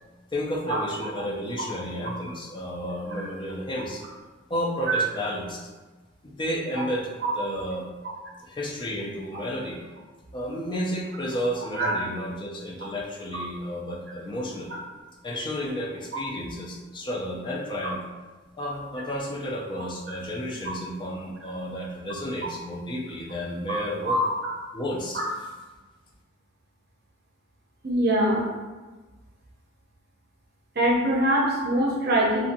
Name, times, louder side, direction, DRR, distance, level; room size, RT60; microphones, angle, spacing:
voice 1, 0.3-4.0 4.5-5.7 6.2-7.1 7.4-7.9 8.4-9.8 10.3-14.8 15.2-18.0 18.6-24.2 24.7-25.2, equal, 25° left, -1 dB, 0.4 m, -32 dB
voice 2, 27.8-28.5 30.8-32.5, right 1 dB, 50° right, -3 dB, 0.6 m, -23 dB
2.6 x 2.5 x 2.6 m, 1.3 s
head